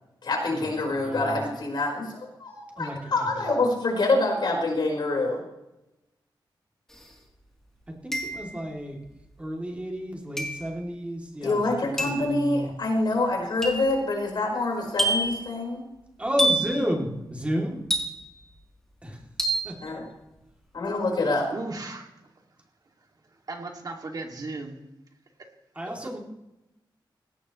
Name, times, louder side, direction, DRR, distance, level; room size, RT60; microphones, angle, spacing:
voice 1, 0.2-5.4 11.4-15.8 19.8-20.1 20.7-21.5, left 2 dB, 60° left, 0 dB, 4.8 m, -26 dB
voice 2, 1.0-1.4 2.8-3.5 8.0-9.0 9.4-11.7 12.0-12.7 16.2-17.8 19.0-19.2 19.6-20.0 25.8-26.2, equal, 15° right, -1 dB, 2.9 m, -31 dB
sound 1, 6.9-7.0 8.1-8.7 10.4-10.7 12.0-12.3 13.6-14.0 15.0-15.4 16.4-16.8 17.9-18.4 19.4-19.7, right 1 dB, 5° left, 3.1 m, -27 dB
voice 3, 21.5-22.1 23.5-24.8 25.8-26.1, right 3 dB, 50° right, 2 dB, 2.4 m, -36 dB
19.0 x 17.5 x 3.2 m, 0.93 s
wide cardioid pair, 145°, 8 cm